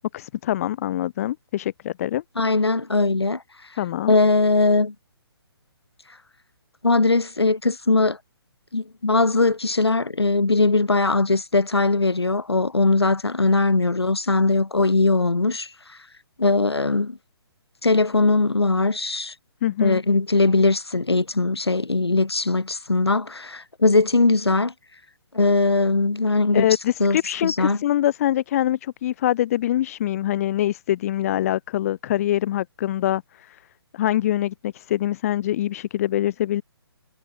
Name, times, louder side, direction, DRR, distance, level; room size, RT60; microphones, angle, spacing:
voice 1, 0.1-2.2 3.8-4.1 19.6-20.0 26.5-33.6 33.9-36.6, left 12 dB, 35° left, 3.5 m, -24 dB
voice 2, 2.4-3.4 4.1-4.9 6.8-8.2 8.7-15.7 16.4-17.2 17.8-19.3 19.8-24.7 25.3-26.7 27.0-27.2 27.4-27.8, left 3 dB, 75° left, 3.6 m, -20 dB
figure-of-eight pair, 135°, 13 cm